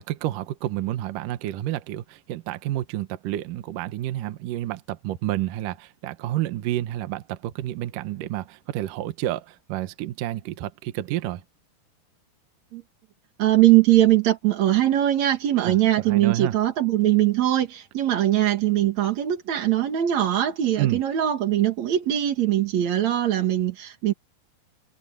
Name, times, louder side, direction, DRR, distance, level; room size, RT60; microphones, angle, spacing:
voice 1, 0.0-11.4 15.6-15.8 16.1-16.6 20.8-21.0, right 14 dB, 70° right, 2.3 m, -29 dB
voice 2, 13.4-24.1, right 13 dB, 55° right, 2.5 m, -21 dB
omnidirectional pair, 4.7 m